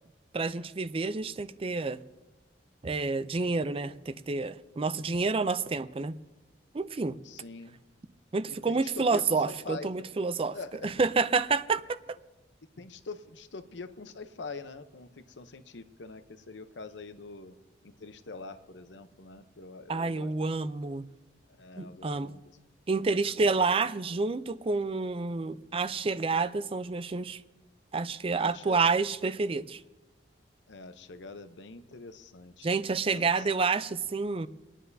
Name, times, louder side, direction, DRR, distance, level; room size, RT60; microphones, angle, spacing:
voice 1, 0.3-2.0 2.8-6.1 6.7-7.2 8.3-10.6 10.8-12.0 19.9-21.0 21.8-22.3 22.9-27.4 27.9-29.8 32.6-34.5, right 4 dB, 30° right, 0.4 m, -29 dB
voice 2, 7.2-7.8 8.5-9.9 10.5-10.9 12.8-17.6 17.8-20.5 21.6-22.4 23.0-23.2 28.4-28.8 30.7-33.5, left 3 dB, 85° left, 0.8 m, -44 dB
30.0 x 10.0 x 2.7 m
head